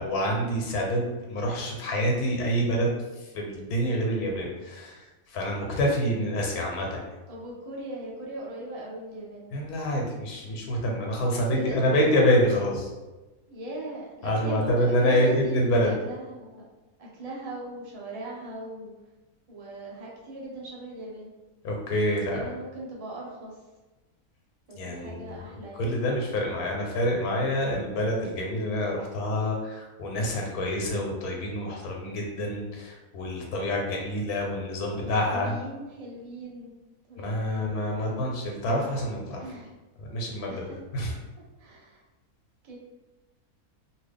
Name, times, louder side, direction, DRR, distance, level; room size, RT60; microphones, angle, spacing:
voice 1, 0.0-7.0 9.5-12.9 14.2-15.9 21.6-22.5 24.8-35.5 37.2-39.4 40.0-41.1, equal, 85° left, -1 dB, 1.2 m, -27 dB
voice 2, 7.3-9.5 11.3-12.1 13.5-16.7 17.0-18.9 19.5-21.3 22.0-23.6 24.7-25.9 34.9-36.7 37.1-38.2 39.4-39.7 40.5-40.8 41.6-42.0 42.6-42.8, right 1 dB, 35° right, -4 dB, 0.7 m, -40 dB
2.9 x 2.7 x 3.3 m, 1.1 s
omnidirectional pair, 1.6 m